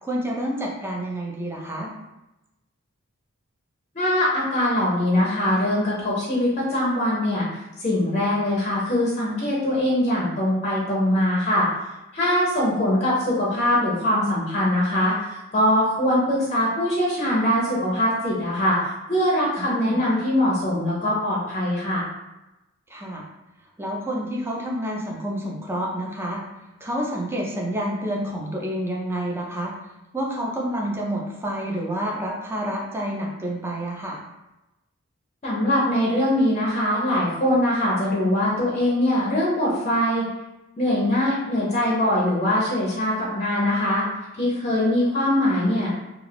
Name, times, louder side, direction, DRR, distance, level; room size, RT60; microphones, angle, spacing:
voice 1, 0.0-1.9 19.6-20.0 22.9-23.3 23.8-26.4 26.8-29.7 30.1-34.2, right 1 dB, 10° right, -2 dB, 0.5 m, -28 dB
voice 2, 3.9-7.5 7.8-11.7 12.1-22.0 35.4-40.2 40.8-44.0 44.4-45.9, left 1 dB, 30° left, -5 dB, 0.6 m, -22 dB
2.4 x 2.4 x 3.3 m, 0.98 s
head